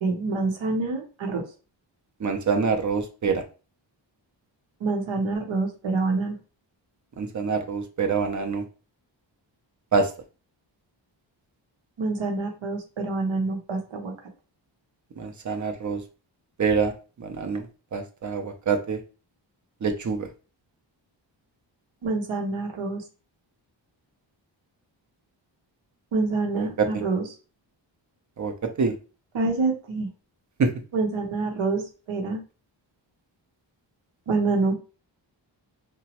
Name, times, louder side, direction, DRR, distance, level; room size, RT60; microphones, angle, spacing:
voice 1, 0.0-1.4 4.8-6.3 12.0-14.1 22.0-23.0 26.1-27.2 29.3-30.1 30.9-31.8 32.1-32.4 34.3-34.8, right 3 dB, 85° right, 3 dB, 0.8 m, -26 dB
voice 2, 2.2-3.4 7.2-8.6 9.9-10.1 15.2-16.0 16.6-16.9 17.2-17.7 17.9-19.0 19.8-20.3 26.5-26.9 28.4-28.5 28.8-28.9 30.6-30.7, right 5 dB, 40° right, 6 dB, 0.5 m, -25 dB
3.0 x 2.1 x 2.8 m, 0.34 s
wide cardioid pair, 130°, 46 cm